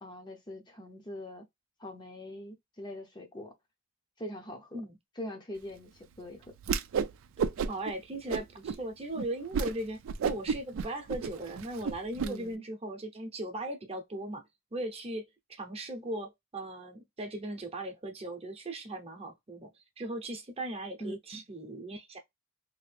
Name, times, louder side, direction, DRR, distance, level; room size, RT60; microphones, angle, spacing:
voice 1, 0.0-1.4 1.8-3.5 4.2-4.8 5.2-6.5 12.2-12.6 21.0-21.4, equal, 20° left, 0.6 m, -42 dB
Whoosh swoosh swish, 6.6-7.1 7.4-7.9 8.3-8.8 9.2-9.3 9.5-9.7 10.1-12.3, right 6 dB, 85° right, 0.4 m, -31 dB
voice 2, 7.7-14.4 14.7-15.2 15.5-19.7 20.0-22.2, right 1 dB, 30° right, 0.7 m, -38 dB
2.8 x 2.5 x 3.3 m
head